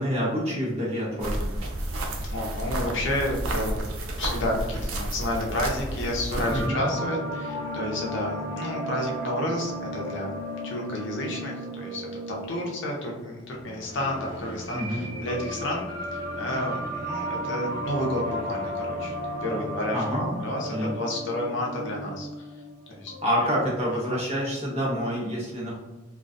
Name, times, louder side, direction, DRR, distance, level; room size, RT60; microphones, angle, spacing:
voice 1, 0.0-1.6 6.5-6.8 14.7-15.0 19.9-20.4 20.7-20.9 23.2-25.8, equal, 30° right, -6 dB, 0.8 m, -27 dB
sound 1, 1.2-6.7, right 1 dB, 80° right, 0.4 m, -31 dB
voice 2, 2.2-3.8 4.2-10.3 10.6-15.8 16.1-20.0 20.4-22.5 22.9-23.1 24.1-24.2, left 1 dB, 60° left, -1 dB, 0.5 m, -31 dB
sound 2, 6.4-23.7, equal, 25° left, 0.9 m, -34 dB
2.3 x 2.2 x 2.5 m, 1.1 s
head